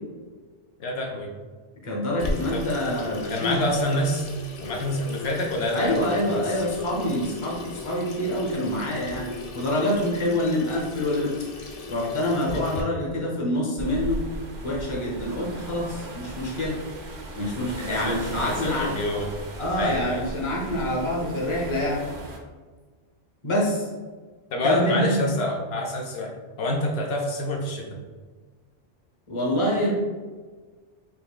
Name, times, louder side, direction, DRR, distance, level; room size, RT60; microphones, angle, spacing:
voice 1, 0.8-1.3 2.5-2.6 3.3-4.3 4.6-6.6 12.5-12.8 17.9-18.2 18.4-19.3 19.8-20.2 24.5-28.0, left 1 dB, 80° left, 0 dB, 0.8 m, -27 dB
voice 2, 1.8-3.6 5.7-9.3 9.5-11.4 11.9-14.2 14.6-16.8 17.3-18.9 19.6-22.0 23.4-23.9 24.6-25.1 29.3-29.9, left 1 dB, 30° left, -3 dB, 0.9 m, -26 dB
Water tap faucet / Sink (filling or washing), 2.2-12.8, left 2 dB, 55° left, 0.4 m, -37 dB
sound 1, 13.8-22.4, right 1 dB, 85° right, 0.9 m, -37 dB
4.3 x 3.1 x 2.3 m, 1.4 s
omnidirectional pair, 1.0 m